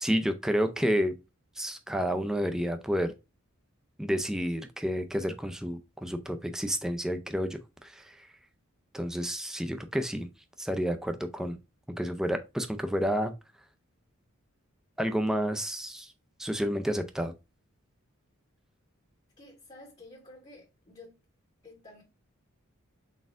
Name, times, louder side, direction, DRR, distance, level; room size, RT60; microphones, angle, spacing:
voice 1, 0.0-1.1 1.6-3.1 4.0-8.3 8.9-10.3 10.6-11.6 12.0-13.3 15.0-16.1 16.4-17.3, equal, 5° right, 0.4 m, -30 dB
voice 2, 19.4-21.2 21.6-22.0, left 2 dB, 25° left, 0.9 m, -51 dB
4.1 x 3.7 x 2.4 m
head